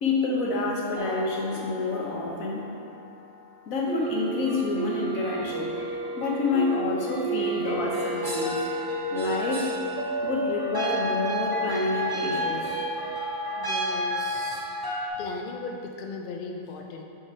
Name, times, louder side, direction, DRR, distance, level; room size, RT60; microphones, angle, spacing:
voice 1, 0.0-2.6 3.7-5.7 6.2-8.6 9.1-9.7 10.2-12.8, left 3 dB, 80° left, -2 dB, 1.4 m, -28 dB
sound 1, 0.9-3.4 3.9-15.1, right 1 dB, 20° right, 0.7 m, -31 dB
voice 2, 13.5-14.7 15.2-17.0, left 4 dB, 55° left, 2 dB, 0.6 m, -37 dB
7.1 x 4.9 x 4.3 m, 2.6 s
omnidirectional pair, 1.4 m